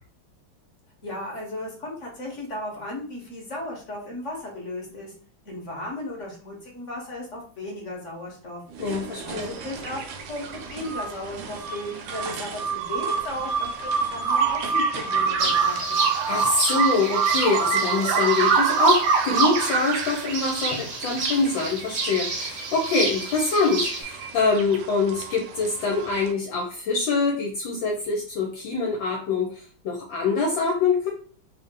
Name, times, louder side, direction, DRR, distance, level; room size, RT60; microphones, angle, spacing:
voice 1, 1.0-5.1 5.4-8.6 9.2-16.1, left 1 dB, 45° left, -1 dB, 1.1 m, -35 dB
sound 1, 8.7-15.7, right 5 dB, 70° right, 1.3 m, -40 dB
voice 2, 8.8-9.5 16.3-31.1, left 3 dB, 70° left, 0 dB, 1.3 m, -24 dB
sound 2, 9.3-26.3, right 6 dB, 90° right, 1.5 m, -27 dB
sound 3, 15.4-24.0, right 3 dB, 55° right, 1.0 m, -31 dB
3.5 x 2.7 x 3.6 m, 0.42 s
omnidirectional pair, 2.4 m